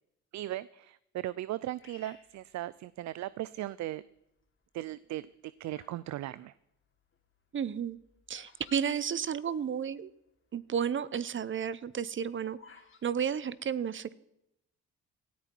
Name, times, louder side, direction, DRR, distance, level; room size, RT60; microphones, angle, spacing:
voice 1, 0.3-4.0 4.7-5.3 5.6-6.5, right 14 dB, 65° right, 18 dB, 0.5 m, -37 dB
Bird vocalization bird call bird song, 1.8-3.3 3.9-4.4 5.1-6.1 6.3-9.8 10.1-10.2 10.4-10.7 11.1-13.1, left 5 dB, 45° left, 3.0 m, -58 dB
voice 2, 7.5-8.0 8.3-10.1 10.5-12.6 13.0-14.2, right 8 dB, 40° right, 18 dB, 0.8 m, -32 dB
18.0 x 13.5 x 4.6 m, 0.82 s
cardioid pair, 90°, 30 cm